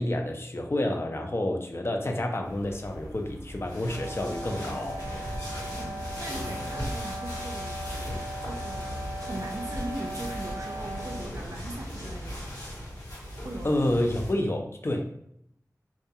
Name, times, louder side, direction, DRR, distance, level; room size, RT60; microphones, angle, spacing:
voice 1, 0.0-5.0 13.6-15.1, left 1 dB, 40° left, 2 dB, 0.5 m, -29 dB
sound 1, 2.4-14.3, equal, 75° left, 1.2 m, -38 dB
sound 2, 3.8-11.3, right 1 dB, 35° right, 0.9 m, -39 dB
voice 2, 5.8-7.9 8.4-12.6 13.4-13.7, right 1 dB, 60° right, 2 dB, 0.5 m, -39 dB
Thunder / Rain, 7.5-12.9, equal, 55° left, 1.0 m, -46 dB
2.3 x 2.2 x 2.7 m, 0.74 s
wide cardioid pair, 45°, 6 cm